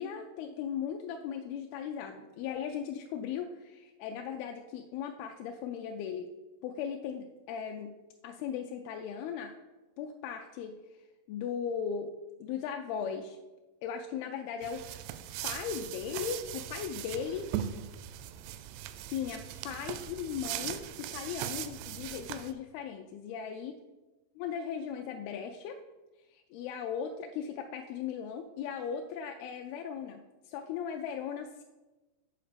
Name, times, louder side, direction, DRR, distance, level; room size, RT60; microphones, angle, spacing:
voice 1, 0.0-6.3 6.6-7.9 8.2-9.5 10.0-10.8 11.3-12.1 12.4-13.4 13.8-14.8 15.4-17.5 19.1-23.8 24.4-25.8 26.3-31.6, left 7 dB, 85° left, 3 dB, 2.2 m, -37 dB
sound 1, 14.6-22.5, right 11 dB, 90° right, 2.7 m, -39 dB
8.4 x 4.2 x 6.7 m, 1.2 s
omnidirectional pair, 4.8 m